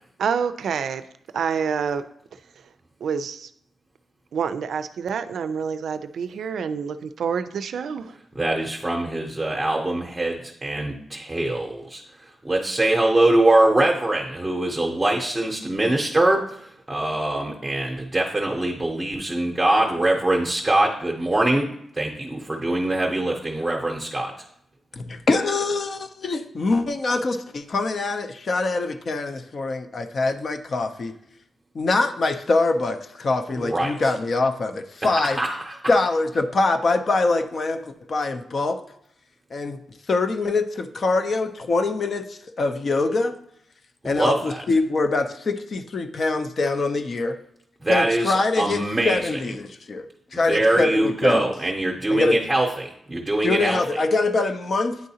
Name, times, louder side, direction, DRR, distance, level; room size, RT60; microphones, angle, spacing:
voice 1, 0.2-1.0 1.3-2.0 3.0-3.5 4.3-8.2, right 6 dB, 75° right, 12 dB, 0.4 m, -27 dB
voice 2, 8.4-21.7 21.9-24.3 33.5-33.9 35.0-35.8 44.0-44.6 47.8-49.4 50.3-53.8, right 1 dB, 15° right, 0 dB, 0.7 m, -23 dB
voice 3, 25.0-31.1 31.7-35.4 35.9-38.8 39.5-39.8 40.1-43.3 44.0-47.4 47.9-50.1 50.3-51.5 52.1-52.4 53.4-55.0, left 3 dB, 45° left, 8 dB, 0.5 m, -24 dB
9.3 x 3.7 x 2.8 m, 0.73 s
cardioid pair, 105°, 0 cm